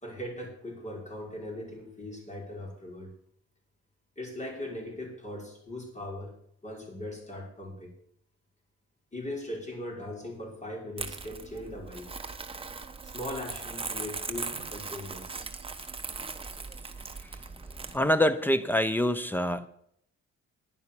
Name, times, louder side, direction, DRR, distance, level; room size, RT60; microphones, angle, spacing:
voice 1, 0.0-3.1 4.2-6.3 6.6-7.9 9.1-12.1 13.0-15.3, left 1 dB, 25° left, -1 dB, 5.8 m, -39 dB
Crumpling crinkling, 11.0-18.0, right 4 dB, 20° right, 1.1 m, -39 dB
voice 2, 17.9-19.7, left 1 dB, 5° left, 13 dB, 1.0 m, -25 dB
11.0 x 9.4 x 7.2 m, 0.70 s
cardioid pair, 90°, 30 cm